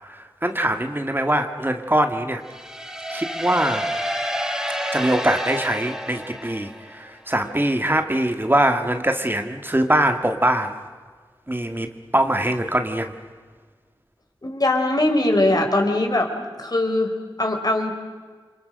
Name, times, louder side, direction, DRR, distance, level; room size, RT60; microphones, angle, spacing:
voice 1, 0.0-2.4 3.1-3.9 4.9-10.8 11.5-13.1, right 1 dB, 25° right, 6 dB, 1.8 m, -22 dB
sound 1, 2.5-7.2, equal, 5° right, 3.6 m, -29 dB
voice 2, 14.4-16.3 16.6-17.9, left 1 dB, 50° left, 4 dB, 3.9 m, -21 dB
28.5 x 25.0 x 6.5 m, 1.5 s
wide cardioid pair, 50°, 8 cm